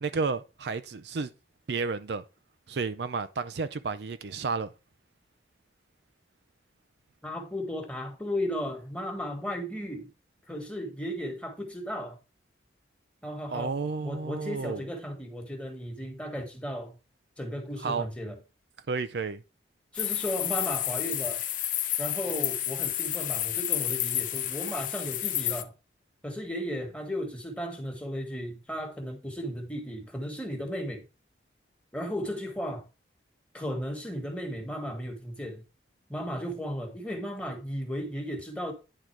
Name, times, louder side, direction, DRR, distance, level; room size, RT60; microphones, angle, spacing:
voice 1, 0.0-1.3 1.7-2.2 2.7-4.7 13.5-14.8 17.8-18.1 18.9-19.4, right 4 dB, 65° right, 0.5 m, -31 dB
voice 2, 7.2-10.1 10.5-12.2 13.2-16.9 17.4-18.4 19.9-21.4 22.0-25.7 26.2-31.0 31.9-32.9 33.5-35.6 36.1-38.7, equal, 5° left, 1.5 m, -35 dB
sound 1, 20.0-25.6, left 12 dB, 45° left, 0.6 m, -30 dB
9.9 x 3.9 x 4.5 m
head